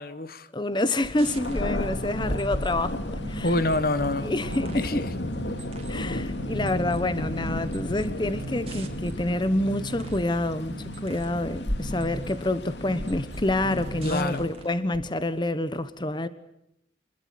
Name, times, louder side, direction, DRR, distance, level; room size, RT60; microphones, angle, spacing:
voice 1, 0.0-0.5 3.4-4.3 4.7-5.1 14.0-14.5, left 2 dB, 55° left, 1.3 m, -27 dB
voice 2, 0.5-3.5 4.2-5.1 5.9-16.3, left 1 dB, 25° left, 1.1 m, -27 dB
sound 1, 0.8-2.8 3.2-4.9 5.3-6.0 6.4-9.2 9.6-10.3 10.7-11.4 11.7-12.4 12.8-14.7 14.9-15.1, right 1 dB, 35° right, 3.1 m, -39 dB
Thunder, 1.1-14.7, left 1 dB, 85° left, 2.4 m, -33 dB
26.5 x 21.0 x 9.3 m
head